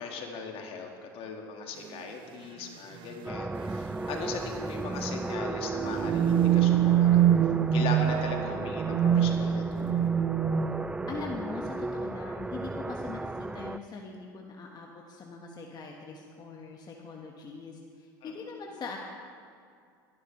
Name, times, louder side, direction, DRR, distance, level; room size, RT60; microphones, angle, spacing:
voice 1, 0.0-7.2 7.7-10.1 18.2-18.3, left 5 dB, 50° left, 2 dB, 2.0 m, -39 dB
sound 1, 1.9-2.0 3.0-3.3 3.5-3.6 4.1-4.3 5.3-11.0, right 10 dB, 45° right, 0.7 m, -25 dB
sound 2, 3.3-13.8, right 2 dB, 10° right, 0.4 m, -35 dB
voice 2, 11.1-19.0, left 4 dB, 35° left, 0 dB, 1.5 m, -41 dB
21.5 x 11.0 x 3.3 m, 2.3 s
hypercardioid pair, 80°, 12 cm